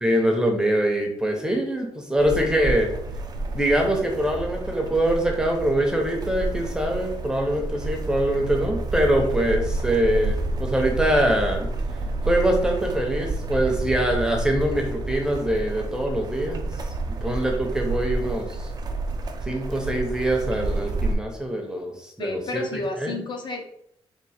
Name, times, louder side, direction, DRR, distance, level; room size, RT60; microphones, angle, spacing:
voice 1, 0.0-2.9 3.5-11.7 12.3-16.7 17.1-18.7 19.4-23.2, right 1 dB, 5° right, 2 dB, 0.7 m, -24 dB
sound 1, 2.2-21.2, right 2 dB, 40° right, 0.5 m, -29 dB
voice 2, 22.2-23.7, left 3 dB, 50° left, 3 dB, 0.6 m, -31 dB
3.6 x 2.5 x 4.2 m, 0.71 s
wide cardioid pair, 150°, 10 cm